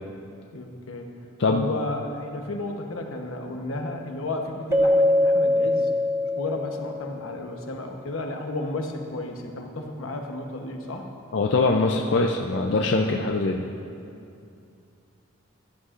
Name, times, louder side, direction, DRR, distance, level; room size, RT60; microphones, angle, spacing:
voice 1, 0.5-1.2 1.5-5.9 6.4-11.1, left 2 dB, 85° left, 3 dB, 1.0 m, -33 dB
Keyboard (musical), 4.7-7.2, left 1 dB, 10° right, 0.4 m, -22 dB
voice 2, 11.3-13.6, left 3 dB, 55° left, 2 dB, 0.4 m, -22 dB
15.0 x 11.0 x 2.5 m, 2.6 s
head